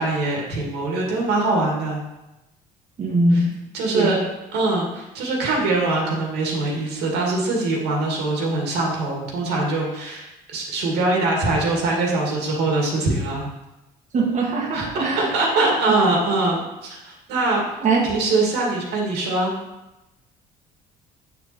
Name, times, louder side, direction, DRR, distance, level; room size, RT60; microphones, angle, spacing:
voice 1, 0.0-2.0 3.3-3.4 3.7-4.2 4.5-13.5 14.7-17.6 18.0-19.5, right 2 dB, 85° right, -2 dB, 2.2 m, -23 dB
voice 2, 3.0-3.5 3.9-4.1 14.1-15.3 17.8-18.0, right 2 dB, 45° right, -3 dB, 1.6 m, -21 dB
8.0 x 4.6 x 4.5 m, 0.98 s
cardioid pair, 110°, 17 cm